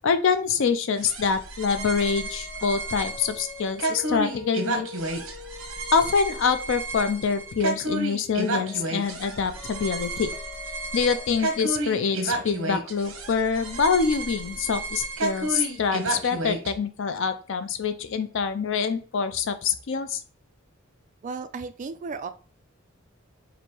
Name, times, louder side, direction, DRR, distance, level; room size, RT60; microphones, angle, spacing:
voice 1, 0.0-4.9 5.9-10.3 10.9-20.2, left 5 dB, 65° left, 10 dB, 0.4 m, -25 dB
sound 1, 1.0-16.7, right 2 dB, 70° right, 0.8 m, -32 dB
sound 2, 1.8-14.6, left 5 dB, 15° left, 1.8 m, -46 dB
voice 2, 21.2-22.3, right 4 dB, 35° right, 10 dB, 0.3 m, -34 dB
3.0 x 2.6 x 4.4 m, 0.38 s
head